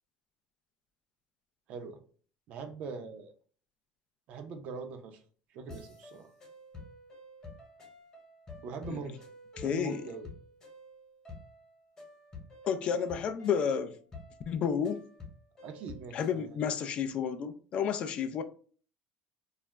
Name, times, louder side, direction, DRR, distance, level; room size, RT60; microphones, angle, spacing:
voice 1, 1.7-2.0 2.5-3.3 4.3-5.2 5.5-6.3 8.6-9.2 9.6-10.3 15.6-16.6, right 4 dB, 55° right, 0.6 m, -42 dB
sound 1, 5.7-16.4, left 2 dB, 25° left, 1.0 m, -50 dB
voice 2, 9.6-10.0 12.7-14.0 14.5-15.0 16.1-18.4, left 7 dB, 40° left, 0.3 m, -31 dB
2.3 x 2.0 x 3.3 m
supercardioid pair, 120°, 3 cm